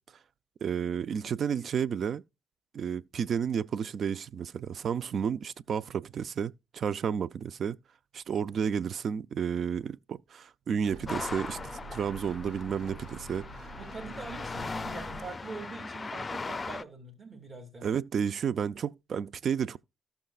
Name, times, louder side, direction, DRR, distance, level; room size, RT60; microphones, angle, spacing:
voice 1, 0.6-2.2 2.7-7.8 8.1-11.6 11.9-13.6 17.8-19.8, right 7 dB, 55° right, 0.4 m, -31 dB
sound 1, 10.8-15.2, right 2 dB, 75° right, 4.1 m, -46 dB
sound 2, 11.1-16.8, left 4 dB, 30° left, 0.5 m, -39 dB
voice 2, 13.8-17.9, right 3 dB, 35° right, 2.5 m, -43 dB
17.0 x 5.8 x 2.4 m
cardioid pair, 90°, 0 cm